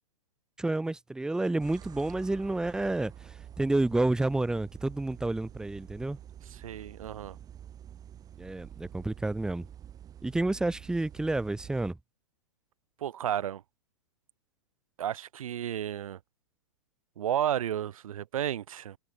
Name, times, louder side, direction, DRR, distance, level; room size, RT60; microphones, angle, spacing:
voice 1, 0.6-6.2 8.4-9.7 10.2-12.0, right 2 dB, 5° right, 1.2 m, -30 dB
sound 1, 1.6-11.9, right 10 dB, 20° right, 2.4 m, -48 dB
voice 2, 6.5-7.4 13.0-13.6 15.0-16.2 17.2-19.0, right 10 dB, 80° right, 0.7 m, -32 dB
hypercardioid pair, 135°, 17 cm